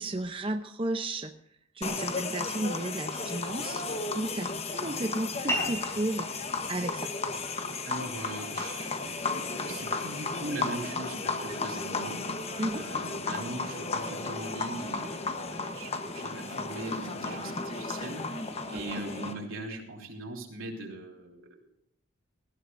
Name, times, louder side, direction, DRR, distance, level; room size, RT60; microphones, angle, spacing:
voice 1, 0.0-1.3 1.8-6.3 6.7-7.1 9.7-9.8 12.6-12.8 18.7-19.0, right 1 dB, 25° right, 6 dB, 0.7 m, -33 dB
sound 1, 1.8-19.3, left 3 dB, 30° left, 1.1 m, -34 dB
sound 2, 5.5-10.5, equal, 15° left, 4.5 m, -39 dB
voice 2, 7.8-12.3 12.8-21.7, right 2 dB, 85° right, 1 dB, 3.4 m, -41 dB
19.5 x 15.0 x 2.6 m, 0.77 s
head